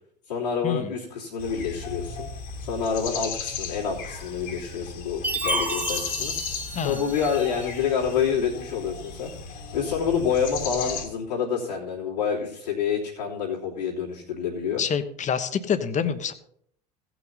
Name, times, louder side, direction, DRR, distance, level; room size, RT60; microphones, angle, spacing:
voice 1, 0.3-2.3 2.6-6.3 6.8-9.3 9.7-14.8, left 7 dB, 85° left, -5 dB, 3.0 m, -27 dB
sound 1, 1.4-11.1, left 5 dB, 60° left, 2.0 m, -35 dB
Chime, 5.2-7.7, right 3 dB, 10° right, 0.8 m, -31 dB
voice 2, 14.8-16.3, left 7 dB, 35° left, 11 dB, 1.1 m, -26 dB
16.5 x 6.1 x 4.1 m, 0.67 s
hypercardioid pair, 70°, 21 cm